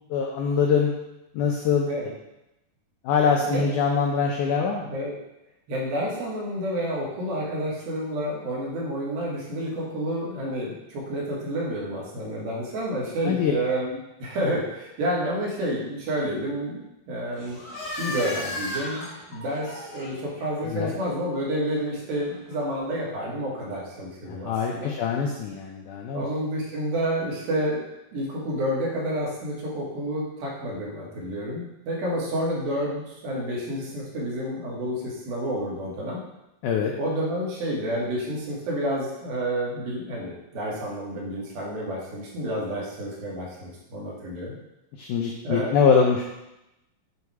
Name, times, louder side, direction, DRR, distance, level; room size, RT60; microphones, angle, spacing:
voice 1, 0.1-0.9 1.3-1.9 3.0-4.9 13.3-13.5 20.7-20.9 24.3-26.2 36.6-36.9 45.0-46.2, left 6 dB, 85° left, 0 dB, 1.8 m, -23 dB
voice 2, 5.7-17.6 18.0-24.9 26.1-27.8 28.1-36.2 37.0-44.5 45.4-45.7, right 1 dB, 80° right, -4 dB, 3.3 m, -29 dB
sound 1, 17.3-22.8, left 1 dB, 40° left, 1.7 m, -37 dB
8.0 x 3.1 x 4.6 m, 0.92 s
omnidirectional pair, 4.2 m